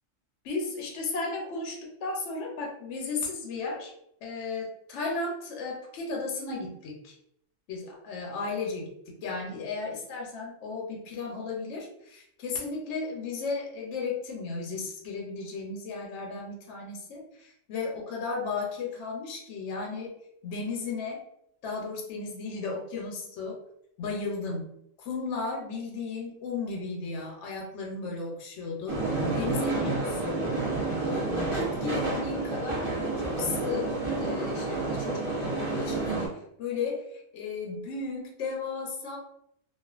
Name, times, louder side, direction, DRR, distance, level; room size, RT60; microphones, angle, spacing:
voice 1, 0.4-3.9 4.2-7.1 7.7-8.9 9.2-20.2 20.4-21.2 21.6-23.6 24.0-24.7 25.1-30.5 31.0-33.9 34.2-39.2, left 4 dB, 70° left, -1 dB, 0.9 m, -35 dB
sound 1, 28.9-36.3, right 3 dB, 35° right, 0.5 m, -30 dB
2.4 x 2.4 x 2.3 m, 0.74 s
omnidirectional pair, 1.3 m